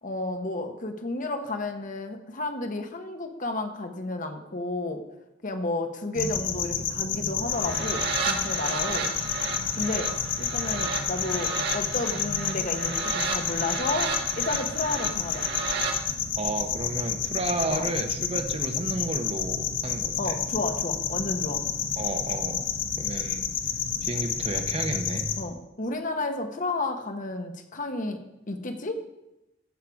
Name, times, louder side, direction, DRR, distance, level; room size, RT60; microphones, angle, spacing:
voice 1, 0.0-5.0 5.4-9.1 9.8-15.5 17.7-17.9 20.2-21.6 25.4-28.2 28.5-29.0, left 2 dB, 45° left, 6 dB, 1.1 m, -32 dB
sound 1, 6.1-25.4, left 7 dB, 70° left, 1.1 m, -30 dB
sound 2, 7.5-16.0, right 4 dB, 55° right, 1.7 m, -33 dB
voice 2, 16.4-20.3 22.0-22.7 23.0-23.5 24.0-25.3, right 2 dB, 30° right, 6 dB, 0.9 m, -32 dB
15.5 x 6.7 x 4.8 m, 0.92 s
head